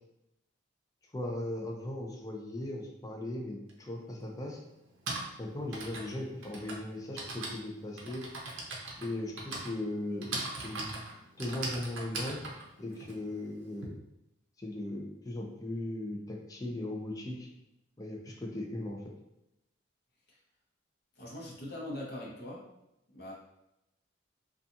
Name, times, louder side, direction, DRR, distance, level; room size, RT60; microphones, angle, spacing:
voice 1, 1.1-4.6 5.4-8.2 9.0-11.0 11.4-12.4 12.8-14.0 14.6-17.5 18.0-19.0, left 1 dB, 20° left, -1 dB, 0.4 m, -38 dB
Typing, 3.7-3.8 4.8-13.9, right 2 dB, 85° right, 0.6 m, -40 dB
voice 2, 21.2-22.6 23.1-23.3, left 1 dB, 55° left, -4 dB, 0.7 m, -41 dB
2.7 x 2.3 x 2.4 m, 0.87 s
head